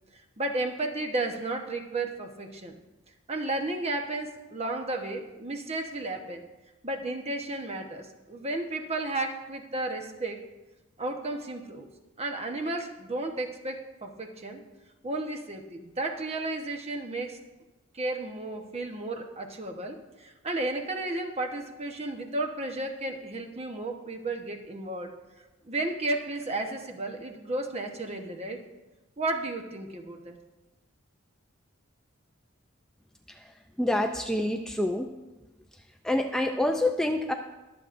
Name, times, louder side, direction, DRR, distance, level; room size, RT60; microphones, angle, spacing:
voice 1, 0.4-2.7 3.3-6.4 6.8-10.4 11.0-11.9 12.2-14.6 15.0-17.4 17.9-25.1 25.6-28.6 29.2-30.4, right 2 dB, 30° right, 3 dB, 1.0 m, -33 dB
voice 2, 33.3-35.1 35.7-37.3, left 1 dB, 5° left, 3 dB, 0.4 m, -28 dB
23.0 x 7.9 x 2.6 m, 1.1 s
head